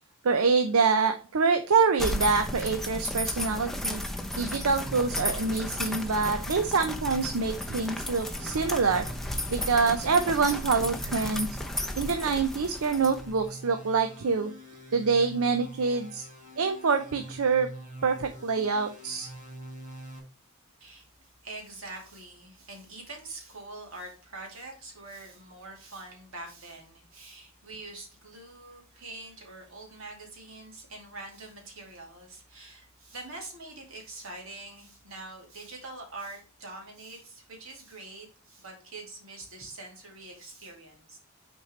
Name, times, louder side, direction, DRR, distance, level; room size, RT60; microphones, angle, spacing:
voice 1, 0.2-4.0 4.4-9.1 9.5-11.5 12.0-14.5 14.9-16.3 16.6-17.7 18.0-19.3, right 4 dB, 85° right, 7 dB, 0.6 m, -26 dB
sound 1, 2.0-13.5, left 1 dB, ahead, 0.7 m, -34 dB
sound 2, 4.8-20.2, right 1 dB, 40° right, 2.0 m, -45 dB
voice 2, 20.8-41.2, right 2 dB, 70° right, 0 dB, 2.5 m, -44 dB
6.6 x 4.4 x 3.2 m, 0.37 s
head